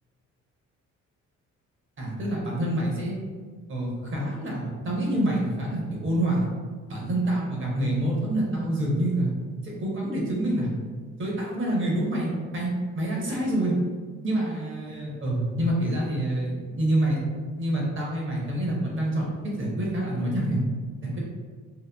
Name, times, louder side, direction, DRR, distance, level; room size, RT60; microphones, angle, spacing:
voice 1, 2.0-3.2 3.7-6.5 6.9-9.3 9.6-10.7 11.2-13.8 14.2-17.2 17.5-20.6 21.0-21.2, right 1 dB, 40° right, -3 dB, 0.8 m, -27 dB
2.9 x 2.2 x 2.2 m, 1.5 s
cardioid pair, 90°, 30 cm